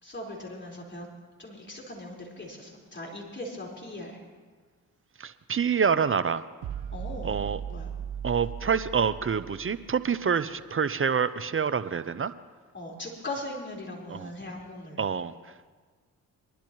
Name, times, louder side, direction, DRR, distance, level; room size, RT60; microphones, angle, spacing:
voice 1, 0.0-1.1 1.4-4.2 6.9-7.3 7.7-7.9 12.7-15.1, left 1 dB, 25° left, -2 dB, 4.6 m, -39 dB
voice 2, 5.2-6.4 7.2-7.6 8.2-12.3 14.1-14.3 15.0-15.5, right 6 dB, 30° right, 14 dB, 0.6 m, -27 dB
sound 1, 6.6-10.1, right 8 dB, 70° right, 0.8 m, -37 dB
24.5 x 11.5 x 3.1 m, 1.5 s
hypercardioid pair, 40°, 43 cm